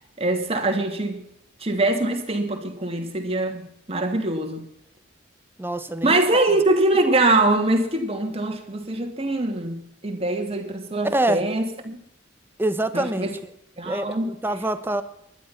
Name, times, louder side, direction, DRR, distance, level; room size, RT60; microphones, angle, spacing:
voice 1, 0.2-1.2 1.6-4.6 6.0-12.0 12.9-13.3 13.8-14.3, right 2 dB, 30° right, 4 dB, 2.7 m, -23 dB
voice 2, 5.6-6.4 11.0-11.4 12.6-13.3 13.8-15.0, right 1 dB, 10° right, 11 dB, 1.1 m, -25 dB
20.0 x 12.0 x 6.0 m, 0.74 s
head